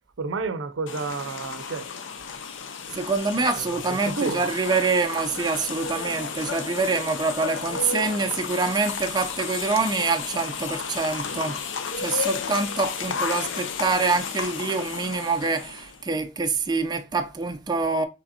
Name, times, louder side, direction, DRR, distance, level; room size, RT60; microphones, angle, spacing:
voice 1, 0.2-1.9 2.9-3.0 3.3-4.5, right 4 dB, 85° right, 0.5 m, -31 dB
sound 1, 0.9-16.0, left 6 dB, 75° left, 0.6 m, -32 dB
voice 2, 2.9-11.6 12.0-18.0, right 4 dB, 20° right, 0.4 m, -25 dB
5.2 x 3.2 x 2.7 m
head